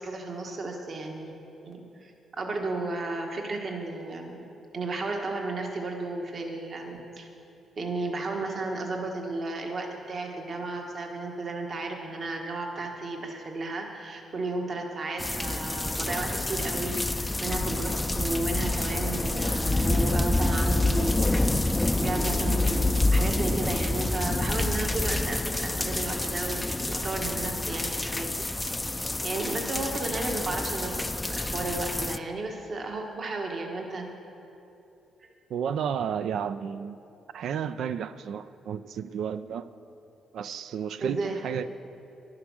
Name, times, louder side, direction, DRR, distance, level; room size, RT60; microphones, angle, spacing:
voice 1, 0.0-1.3 1.6-4.4 4.7-7.3 7.8-28.3 29.2-34.1 41.0-41.4, right 2 dB, 50° right, 2 dB, 1.5 m, -33 dB
sound 1, 15.2-32.2, left 2 dB, 15° left, 0.4 m, -27 dB
voice 2, 35.5-37.0 37.3-39.7 40.3-41.7, right 8 dB, 75° right, 12 dB, 0.4 m, -32 dB
11.5 x 9.7 x 6.2 m, 2.8 s
cardioid pair, 85°, 0 cm